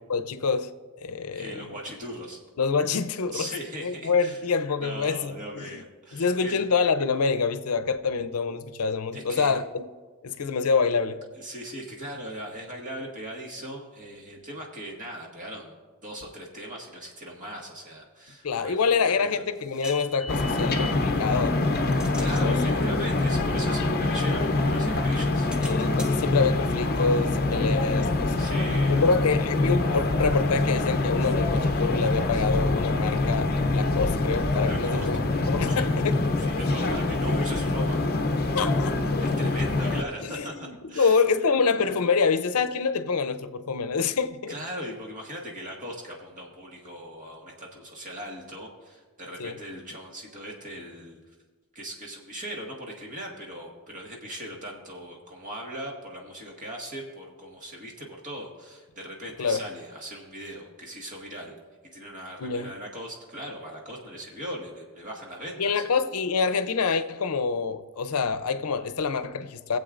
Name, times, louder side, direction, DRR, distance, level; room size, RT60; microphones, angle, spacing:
voice 1, 0.1-0.7 1.0-1.7 2.6-3.5 3.8-5.8 6.1-9.8 10.2-11.2 18.4-21.6 22.2-22.6 22.9-23.1 25.6-28.3 28.9-35.2 35.5-36.5 38.5-39.1 40.3-44.5 49.4-49.6 59.4-59.6 62.4-62.7 65.6-69.8, left 5 dB, 85° left, 0.6 m, -26 dB
voice 2, 1.3-2.4 3.3-4.4 4.8-6.6 9.1-9.6 11.3-15.7 16.0-19.3 22.2-25.9 28.4-29.4 32.3-32.4 34.6-35.1 35.7-35.9 36.4-38.0 39.2-41.2 44.5-51.2 51.7-61.5 61.9-65.9, equal, 35° right, 1.8 m, -39 dB
sound 1, 18.9-21.1 21.6-24.7 25.1-28.6, left 2 dB, 5° right, 0.7 m, -44 dB
sound 2, 20.3-40.0, left 2 dB, 45° left, 0.7 m, -25 dB
22.0 x 7.7 x 2.5 m
head